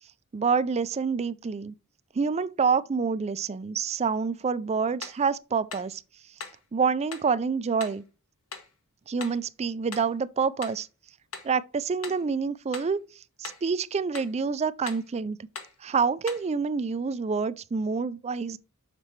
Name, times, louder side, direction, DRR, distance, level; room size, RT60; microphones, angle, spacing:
voice 1, 0.3-1.7 2.1-6.0 6.7-8.0 9.1-10.9 11.4-13.0 13.4-15.4 15.8-18.6, right 5 dB, 30° right, 0.4 m, -27 dB
sound 1, 5.0-5.3 5.7-5.9 6.4-6.6 7.1-7.3 7.8-8.0 8.5-8.7 9.2-9.4 9.9-10.1 10.6-10.8 11.3-11.6 12.0-12.3 12.7-13.0 13.4-13.7 14.1-14.4 14.9-15.1 15.5-15.8 16.3-16.5, left 5 dB, 90° left, 1.4 m, -41 dB
6.7 x 4.3 x 4.5 m
head